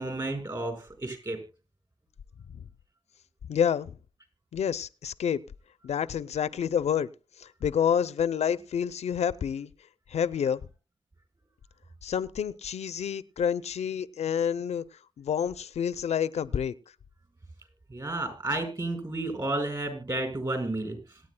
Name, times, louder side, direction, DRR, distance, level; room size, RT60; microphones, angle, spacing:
voice 1, 0.0-1.4 17.9-21.0, right 2 dB, 40° right, 5.1 m, -31 dB
voice 2, 3.5-4.0 4.5-5.4 5.8-7.1 7.4-9.7 10.1-10.6 12.0-14.8 15.2-16.7, left 8 dB, 85° left, 0.5 m, -28 dB
26.0 x 9.3 x 2.2 m
cardioid pair, 75°, 11 cm